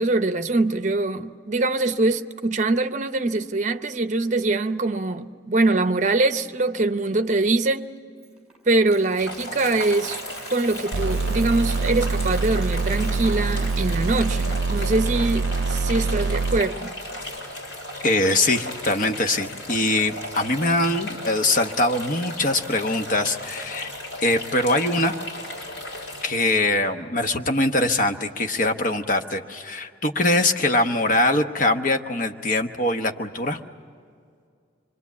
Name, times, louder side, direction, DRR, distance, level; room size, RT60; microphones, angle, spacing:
voice 1, 0.0-7.9 8.7-10.2 10.5-16.9, right 2 dB, 40° right, 0.7 m, -23 dB
Coin (dropping), 8.2-15.6, right 3 dB, 5° right, 5.0 m, -45 dB
sound 1, 9.2-26.2, left 1 dB, 80° left, 6.5 m, -35 dB
sound 2, 10.9-16.6, right 3 dB, 85° right, 0.5 m, -25 dB
voice 2, 18.0-23.9 24.2-25.1 26.2-33.6, left 2 dB, 45° left, 1.0 m, -22 dB
25.5 x 24.0 x 8.4 m
head